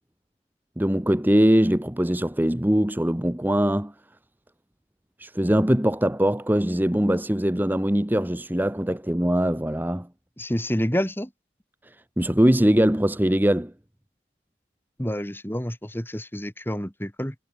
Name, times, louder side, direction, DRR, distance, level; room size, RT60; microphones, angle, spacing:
voice 1, 0.8-3.9 5.2-10.1 11.8-13.7, equal, 10° right, 0.9 m, -22 dB
voice 2, 10.4-11.3 15.0-17.3, equal, 10° left, 2.9 m, -28 dB
head